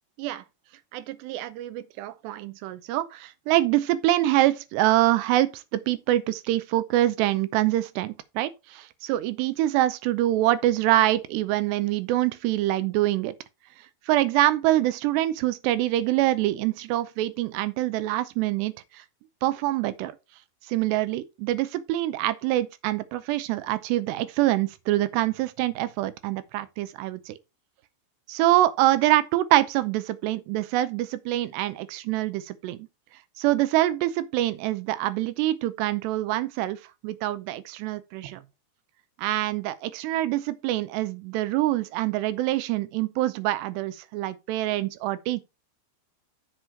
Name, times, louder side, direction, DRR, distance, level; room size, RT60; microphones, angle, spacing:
voice 1, 0.9-13.3 14.1-19.0 19.4-20.1 20.7-27.3 28.3-32.9 33.4-38.4 39.2-45.4, right 15 dB, 80° right, 2.7 m, -25 dB
7.9 x 6.2 x 4.5 m
omnidirectional pair, 5.1 m